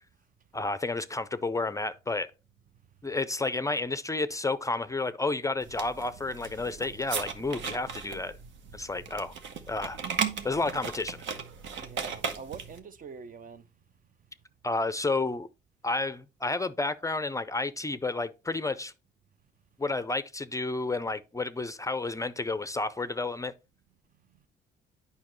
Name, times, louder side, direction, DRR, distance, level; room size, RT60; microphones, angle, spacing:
voice 1, 0.5-2.3 3.0-8.3 8.7-9.3 9.7-10.0 10.4-11.3 14.6-15.5 15.8-18.9 19.8-23.5, left 3 dB, 15° left, 0.4 m, -31 dB
sound 1, 5.6-12.8, right 6 dB, 75° right, 1.0 m, -36 dB
voice 2, 11.8-13.7, right 6 dB, 45° right, 0.5 m, -44 dB
8.6 x 5.4 x 3.0 m
cardioid pair, 90°, 20 cm